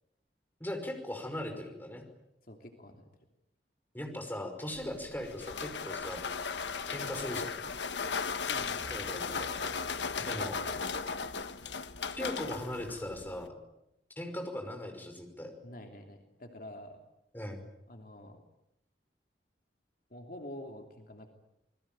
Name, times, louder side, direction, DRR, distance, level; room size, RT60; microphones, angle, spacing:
voice 1, 0.6-2.0 3.9-6.3 6.9-7.5 8.9-9.7 10.2-10.6 12.1-13.5 14.2-15.5 17.3-17.7, left 1 dB, 10° left, 4 dB, 5.5 m, -39 dB
voice 2, 2.4-3.0 8.4-8.9 15.6-17.0 17.9-18.4 20.1-21.3, left 1 dB, 55° left, 4 dB, 3.0 m, -47 dB
sound 1, 4.7-13.5, left 5 dB, 85° left, 1.4 m, -36 dB
sound 2, 8.8-11.8, right 1 dB, 75° right, 5.5 m, -54 dB
28.5 x 21.0 x 9.1 m, 0.86 s
head